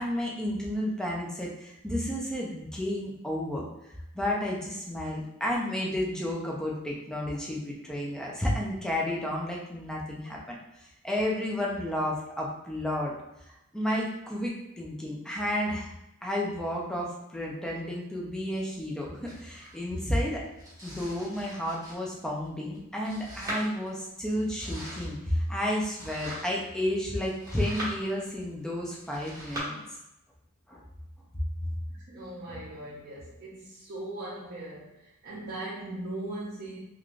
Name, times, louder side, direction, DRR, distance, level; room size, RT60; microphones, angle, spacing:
voice 1, 0.0-3.7 4.1-13.1 13.7-20.4 20.8-29.8 30.7-30.8, left 1 dB, 5° left, -3 dB, 0.5 m, -32 dB
Domestic sounds home sounds, 19.3-29.6, right 1 dB, 15° right, 1.2 m, -43 dB
voice 2, 31.9-36.8, right 1 dB, 45° right, -8 dB, 0.6 m, -39 dB
3.2 x 2.4 x 2.4 m, 0.86 s
head